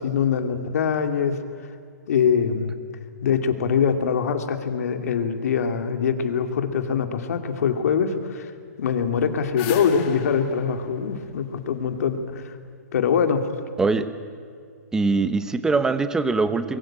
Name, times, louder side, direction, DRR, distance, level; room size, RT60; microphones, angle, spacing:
voice 1, 0.0-1.4 2.1-2.7 3.2-8.5 8.8-12.5 12.9-13.5, left 6 dB, 60° left, 7 dB, 2.6 m, -23 dB
sound 1, 9.1-12.2, left 5 dB, 35° left, 2.3 m, -34 dB
voice 2, 14.9-16.8, right 3 dB, 5° right, 12 dB, 1.0 m, -22 dB
24.5 x 22.0 x 8.7 m, 2.3 s
hypercardioid pair, 150°, 9 cm